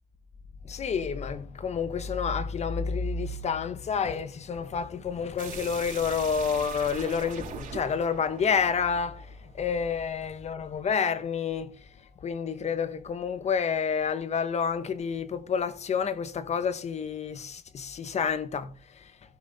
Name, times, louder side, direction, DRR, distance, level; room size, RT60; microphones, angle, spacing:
voice 1, 0.6-9.3 9.6-11.7 12.2-18.8, left 6 dB, 40° left, 1.3 m, -29 dB
sound 1, 5.4-10.1, right 6 dB, 50° right, 4.5 m, -42 dB
16.0 x 6.5 x 3.7 m
cardioid pair, 110°, 17 cm